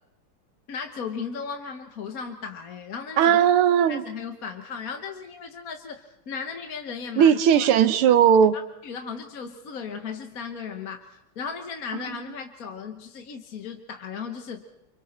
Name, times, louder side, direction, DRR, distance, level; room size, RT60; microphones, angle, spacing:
voice 1, 0.7-3.4 3.9-7.7 8.5-14.6, left 6 dB, 45° left, 5 dB, 1.4 m, -36 dB
voice 2, 3.2-4.0 7.2-8.6 12.1-12.2, right 8 dB, 80° right, 12 dB, 1.9 m, -18 dB
28.5 x 25.5 x 4.4 m, 0.84 s
omnidirectional pair, 2.4 m